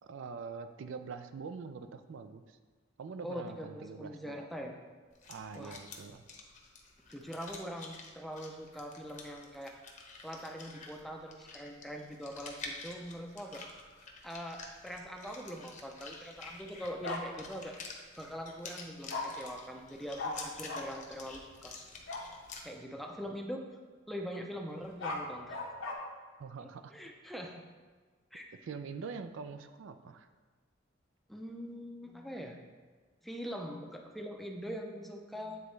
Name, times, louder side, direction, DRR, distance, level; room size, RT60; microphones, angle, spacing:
voice 1, 0.0-2.6 3.0-4.4 5.3-6.2 26.4-26.9 28.6-30.3, right 5 dB, 75° right, 9 dB, 0.4 m, -44 dB
voice 2, 3.2-4.7 5.5-5.8 7.1-9.8 10.2-13.7 14.2-17.8 18.2-21.7 22.6-23.6 24.1-25.6 26.6-27.6 28.3-28.5 31.3-32.6 33.2-35.6, equal, ahead, 2 dB, 0.4 m, -43 dB
sound 1, 5.1-22.6, left 4 dB, 40° left, 0.8 m, -49 dB
Bark, 17.0-17.2 19.1-19.2 20.2-20.3 20.7-20.8 22.1-22.3 24.8-25.9, left 3 dB, 80° left, 0.9 m, -37 dB
9.0 x 4.0 x 3.2 m, 1.4 s
head